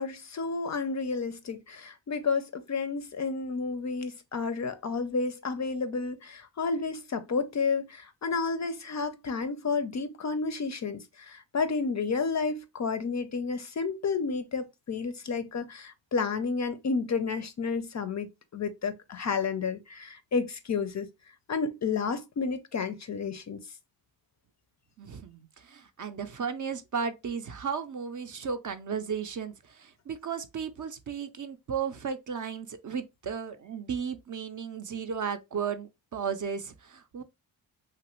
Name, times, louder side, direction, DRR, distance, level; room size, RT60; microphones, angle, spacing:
voice 1, 0.0-21.1 21.5-23.6, left 4 dB, 40° left, 0.4 m, -31 dB
voice 2, 25.0-37.2, right 6 dB, 45° right, 0.5 m, -35 dB
3.0 x 2.4 x 2.9 m
cardioid pair, 80°, 46 cm